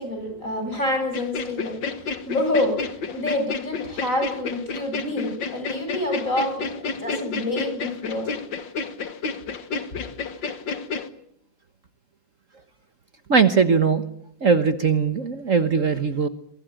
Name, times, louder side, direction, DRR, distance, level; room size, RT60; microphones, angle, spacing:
voice 1, 0.0-8.3, left 1 dB, 45° left, 6 dB, 8.6 m, -27 dB
sound 1, 1.1-11.1, left 4 dB, 80° left, 2.4 m, -31 dB
voice 2, 13.3-14.0 14.4-16.3, right 5 dB, 45° right, 9 dB, 1.6 m, -20 dB
28.5 x 23.5 x 8.9 m, 0.69 s
omnidirectional pair, 2.0 m